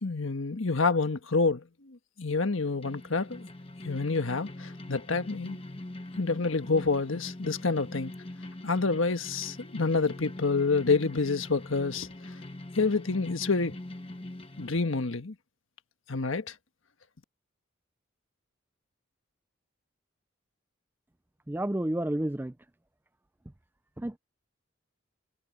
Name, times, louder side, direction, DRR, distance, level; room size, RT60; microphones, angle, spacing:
voice 1, 0.0-3.5 3.8-5.6 6.2-8.1 8.6-12.1 12.7-13.8 14.6-15.3 16.1-16.5, left 4 dB, 80° left, 1.4 m, -28 dB
sound 1, 2.7-14.7, left 1 dB, 25° left, 1.1 m, -43 dB
voice 2, 21.5-22.5 24.0-24.2, right 1 dB, 10° right, 0.4 m, -30 dB
head